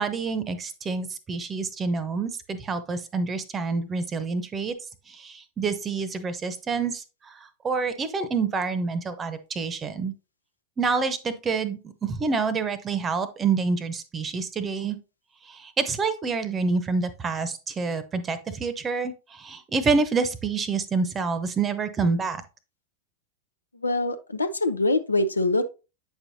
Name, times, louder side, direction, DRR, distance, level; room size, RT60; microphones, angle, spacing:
voice 1, 0.0-4.8 5.1-7.4 7.6-10.1 10.8-15.0 15.5-22.4, right 4 dB, 20° right, 0.8 m, -27 dB
voice 2, 23.8-25.7, left 2 dB, 80° left, 0.6 m, -24 dB
8.6 x 5.5 x 2.8 m
figure-of-eight pair, 90°, 0 cm